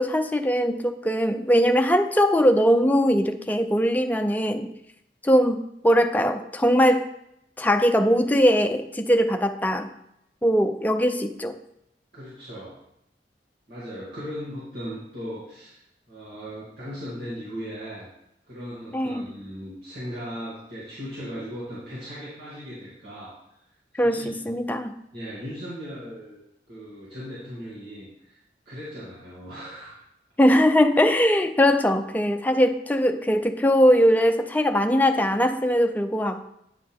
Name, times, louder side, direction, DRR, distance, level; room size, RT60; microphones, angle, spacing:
voice 1, 0.0-4.7 5.2-7.1 7.6-9.9 10.4-11.6 18.9-19.2 24.0-24.9 30.4-36.4, equal, 10° left, 6 dB, 0.5 m, -21 dB
voice 2, 12.1-12.8 13.7-15.8 16.1-18.1 18.5-23.3 23.9-24.3 25.1-28.4 28.7-30.0, equal, 65° right, -10 dB, 2.6 m, -38 dB
9.5 x 5.8 x 3.5 m, 0.80 s
head